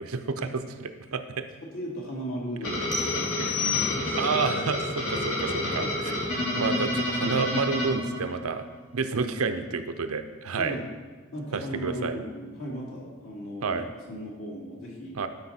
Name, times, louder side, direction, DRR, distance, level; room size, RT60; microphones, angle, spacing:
voice 1, 0.0-1.4 3.4-3.7 4.2-6.2 6.5-8.7 8.9-10.8 11.5-12.2 13.6-13.9 15.2-15.3, right 4 dB, 85° right, 9 dB, 0.6 m, -30 dB
voice 2, 1.7-3.2 3.6-4.3 5.8-5.9 10.5-10.8 11.3-13.8 14.1-15.2, equal, 65° left, -3 dB, 2.4 m, -37 dB
sound 1, 2.6-8.6, left 1 dB, 85° left, 3.1 m, -29 dB
sound 2, 2.9-4.4, left 8 dB, 20° left, 1.0 m, -31 dB
12.0 x 5.4 x 4.3 m, 1.3 s
head